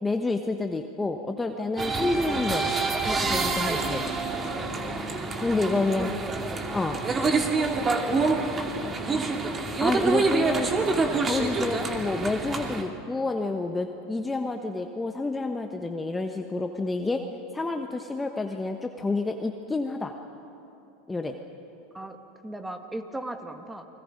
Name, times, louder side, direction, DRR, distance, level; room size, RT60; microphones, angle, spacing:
voice 1, 0.0-2.7 3.0-4.0 5.4-6.1 6.7-7.0 9.8-10.7 11.2-17.2 17.5-20.1 21.1-21.4, left 3 dB, 15° left, 5 dB, 1.1 m, -29 dB
sound 1, 1.8-12.8, right 3 dB, 25° right, 2.4 m, -27 dB
voice 2, 5.8-6.6 8.8-9.3 11.6-11.7 21.9-22.2 22.4-23.9, right 1 dB, 10° right, 6 dB, 1.9 m, -37 dB
29.0 x 21.0 x 5.3 m, 2.9 s
hypercardioid pair, 95°, 0 cm